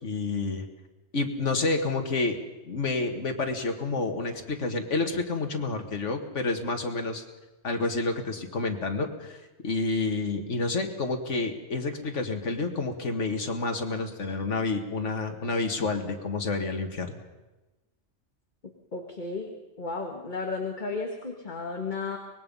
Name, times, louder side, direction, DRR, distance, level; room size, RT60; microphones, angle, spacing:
voice 1, 0.0-0.7 1.1-2.4 2.6-7.2 7.6-9.4 9.6-17.1, left 3 dB, 85° left, 4 dB, 2.1 m, -29 dB
voice 2, 18.9-19.5 19.8-22.2, left 4 dB, 40° left, 2 dB, 1.7 m, -33 dB
24.0 x 20.5 x 5.5 m, 1.1 s
omnidirectional pair, 1.2 m